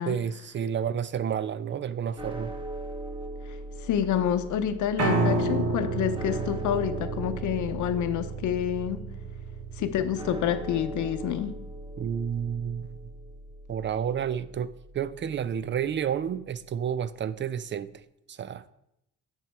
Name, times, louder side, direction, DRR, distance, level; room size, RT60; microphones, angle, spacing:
voice 1, 0.1-2.5 12.0-13.0 13.7-17.9 18.3-18.6, right 8 dB, 40° right, 0.4 m, -30 dB
sound 1, 2.2-16.4, right 1 dB, 15° right, 1.1 m, -41 dB
voice 2, 3.8-9.0 9.8-11.5, left 10 dB, 75° left, 0.7 m, -28 dB
Piano, 5.0-11.2, right 3 dB, 55° right, 1.4 m, -31 dB
9.3 x 4.6 x 4.5 m
cardioid pair, 90°, 30 cm